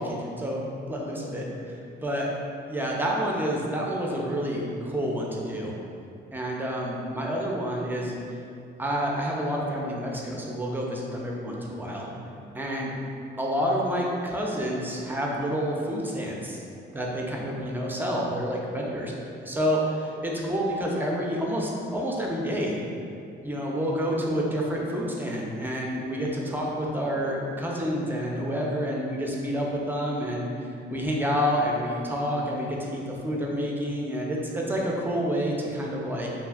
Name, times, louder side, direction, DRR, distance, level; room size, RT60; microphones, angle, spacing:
voice 1, 0.0-2.3 2.7-5.8 6.3-8.2 8.8-12.1 12.5-12.9 13.4-16.6 16.9-19.1 19.4-22.8 23.4-36.3, equal, 10° right, -2 dB, 0.4 m, -29 dB
2.7 x 2.4 x 2.3 m, 2.6 s
cardioid pair, 90°, 20 cm